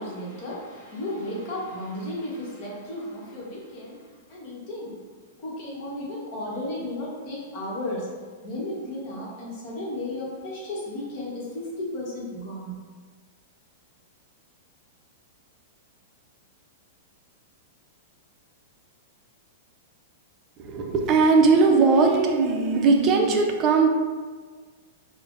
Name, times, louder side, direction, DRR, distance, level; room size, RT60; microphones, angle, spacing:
voice 1, 0.0-4.9 5.4-8.1 8.4-12.8, left 1 dB, 45° left, -4 dB, 1.2 m, -34 dB
voice 2, 20.6-23.9, right 4 dB, 30° right, 2 dB, 0.5 m, -19 dB
5.3 x 2.1 x 2.5 m, 1.5 s
hypercardioid pair, 140°, 0 cm